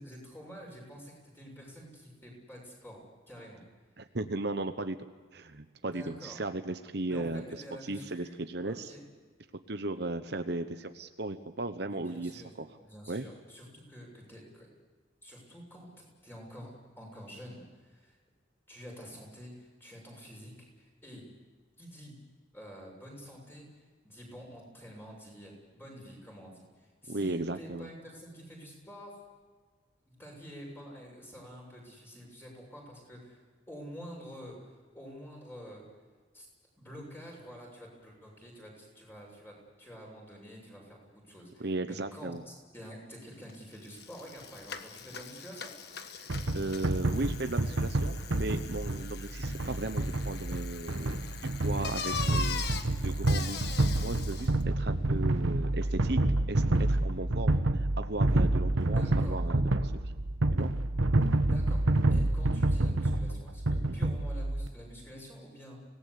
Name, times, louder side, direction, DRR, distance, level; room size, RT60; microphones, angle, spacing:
voice 1, 0.0-3.0 3.3-3.6 5.8-6.4 7.1-7.3 7.6-9.1 11.8-12.5 12.8-14.7 15.2-18.2 18.7-21.2 21.8-22.2 22.5-23.7 24.0-29.2 30.1-35.9 36.3-36.5 36.8-45.7 58.9-59.4 61.5-65.8, equal, 10° left, -1 dB, 7.0 m, -48 dB
voice 2, 4.0-5.0 5.3-7.4 7.8-8.9 9.7-12.7 13.1-13.3 27.1-27.9 41.6-42.4 46.2-52.6 53.0-53.6 54.0-56.2 56.5-56.6 56.9-59.8 60.5-60.7 63.9-64.0, right 2 dB, 55° right, 8 dB, 1.0 m, -36 dB
Bicycle, 43.5-43.6 43.8-54.6, left 5 dB, 55° left, 1.4 m, -41 dB
sound 1, 46.3-64.7, right 2 dB, 85° right, 1.4 m, -28 dB
25.0 x 18.5 x 8.4 m, 1.5 s
head